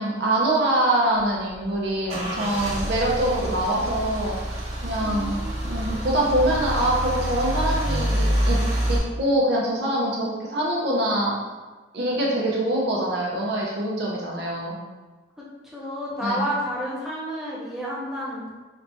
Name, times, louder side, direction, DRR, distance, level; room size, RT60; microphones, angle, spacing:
voice 1, 0.0-4.4 4.8-5.3 5.6-8.6 8.9-11.3 11.9-14.7 16.2-16.4, right 1 dB, 60° right, -4 dB, 0.8 m, -24 dB
Car / Engine starting / Idling, 1.2-9.0, equal, 35° right, 0.9 m, -27 dB
voice 2, 5.0-5.8 15.4-15.5 15.7-18.5, equal, ahead, -6 dB, 0.7 m, -30 dB
4.1 x 2.7 x 3.4 m, 1.2 s
head